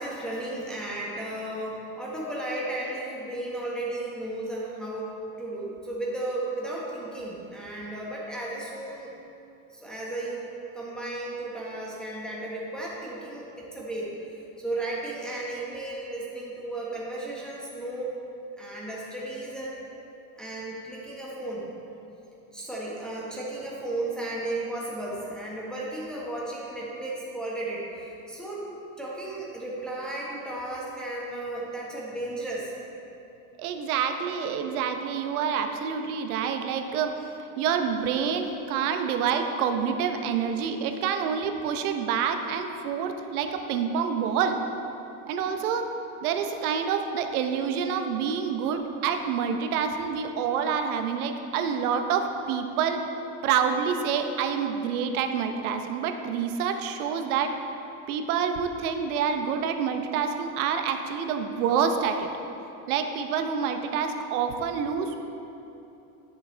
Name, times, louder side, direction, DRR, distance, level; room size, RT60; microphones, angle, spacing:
voice 1, 0.0-9.1 9.7-14.1 14.6-18.2 18.6-19.8 20.4-21.7 22.5-28.6 29.0-32.7, right 2 dB, ahead, -6 dB, 1.4 m, -34 dB
voice 2, 33.6-37.1 37.6-44.6 45.3-45.9 46.2-53.0 53.4-57.5 58.1-62.3 62.9-65.1, right 7 dB, 80° right, 6 dB, 0.9 m, -27 dB
11.0 x 7.2 x 3.3 m, 2.9 s
supercardioid pair, 125°, 43 cm